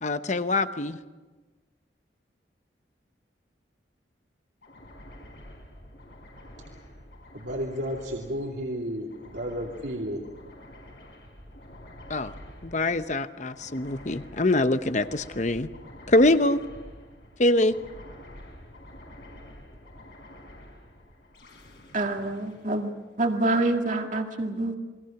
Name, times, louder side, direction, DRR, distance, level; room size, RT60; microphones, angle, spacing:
voice 1, 0.0-1.0 12.1-12.3 12.6-15.7 16.1-16.6 17.4-17.8, left 2 dB, 40° left, 11 dB, 0.9 m, -24 dB
sound 1, 4.6-23.5, left 1 dB, 65° left, 4.8 m, -48 dB
voice 2, 7.3-10.2, equal, 70° right, -2 dB, 2.7 m, -32 dB
voice 3, 21.9-22.9 23.2-24.8, right 2 dB, 45° right, 3 dB, 2.1 m, -26 dB
28.5 x 22.0 x 5.9 m, 1.3 s
head